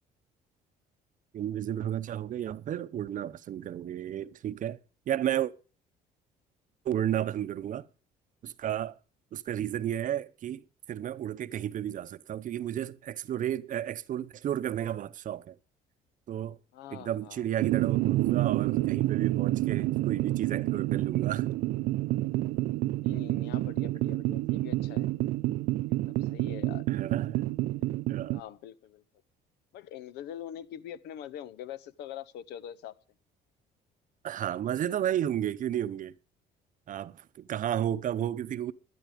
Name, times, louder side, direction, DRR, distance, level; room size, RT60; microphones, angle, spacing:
voice 1, 1.3-4.8 5.1-5.5 6.8-7.9 8.4-9.0 9.3-15.6 16.3-16.6 16.9-21.5 26.9-27.4 28.1-28.4 34.2-36.1 36.9-38.7, right 11 dB, 50° right, 0.7 m, -32 dB
voice 2, 16.7-17.5 23.0-25.1 25.9-26.8 28.3-29.0 29.7-32.9, left 10 dB, 85° left, 0.8 m, -44 dB
sound 1, 17.6-28.4, right 17 dB, 90° right, 0.5 m, -29 dB
12.5 x 11.0 x 5.0 m
cardioid pair, 110°, 17 cm